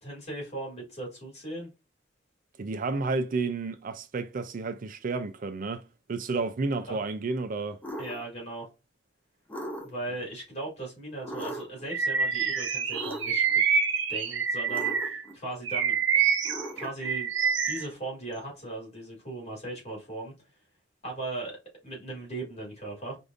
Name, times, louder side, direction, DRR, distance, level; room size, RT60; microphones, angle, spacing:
voice 1, 0.0-1.7 6.9-7.0 8.0-8.7 9.8-13.4 14.1-16.0 16.7-17.3 17.6-20.3 21.0-21.6 21.8-23.2, right 2 dB, 35° left, 2.3 m, -38 dB
voice 2, 2.6-5.8 6.1-7.8, right 3 dB, 45° right, 0.4 m, -31 dB
sound 1, 7.8-8.2 9.5-10.1 11.2-11.8 12.9-13.5 14.7-15.3 16.4-17.1, equal, 10° left, 0.6 m, -38 dB
Bird vocalization bird call bird song, 11.9-15.2 15.6-17.9, right 6 dB, 80° right, 0.8 m, -26 dB
4.9 x 2.6 x 2.4 m
head